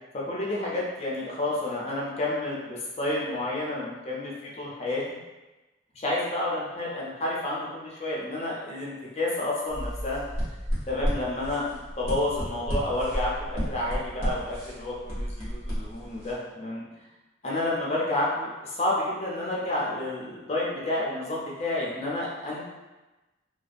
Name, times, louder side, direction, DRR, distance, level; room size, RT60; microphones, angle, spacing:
voice 1, 0.1-5.0 5.9-10.2 10.9-16.8 17.4-22.6, left 1 dB, 35° left, -5 dB, 0.4 m, -30 dB
sound 1, 9.7-16.3, equal, 85° right, 1.0 m, -32 dB
2.4 x 2.2 x 2.4 m, 1.1 s
head